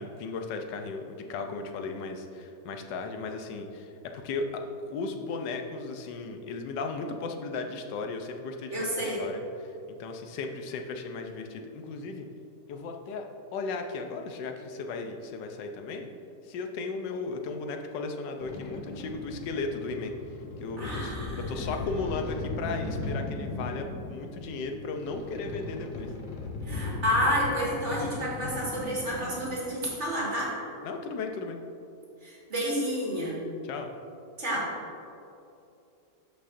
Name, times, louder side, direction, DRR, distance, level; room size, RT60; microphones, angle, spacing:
voice 1, 0.0-9.4 9.9-12.3 12.7-16.1 16.4-20.1 20.6-26.1 30.8-31.6 33.6-33.9, left 4 dB, 90° left, 5 dB, 1.4 m, -36 dB
voice 2, 8.7-9.2 20.8-21.7 26.6-30.5 32.2-33.4 34.4-34.7, equal, 40° right, -6 dB, 2.2 m, -30 dB
sound 1, 18.4-29.5, left 2 dB, 50° left, 1.2 m, -37 dB
13.0 x 5.6 x 2.6 m, 2.7 s
omnidirectional pair, 1.9 m